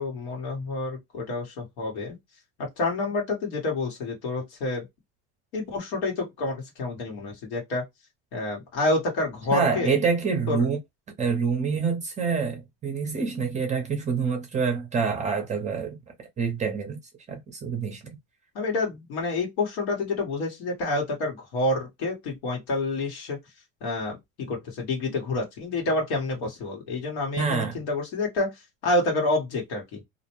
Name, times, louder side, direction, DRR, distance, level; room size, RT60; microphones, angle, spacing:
voice 1, 0.0-2.2 2.8-4.8 5.5-7.8 8.3-10.0 10.5-10.6 18.5-23.4 23.8-28.5 28.8-30.0, left 2 dB, 85° left, 1.3 m, -28 dB
voice 2, 9.5-10.8 11.2-16.0 16.4-17.0 17.3-18.2 27.4-27.8, right 5 dB, 25° right, 0.6 m, -26 dB
2.5 x 2.1 x 3.0 m
cardioid pair, 135°, 31 cm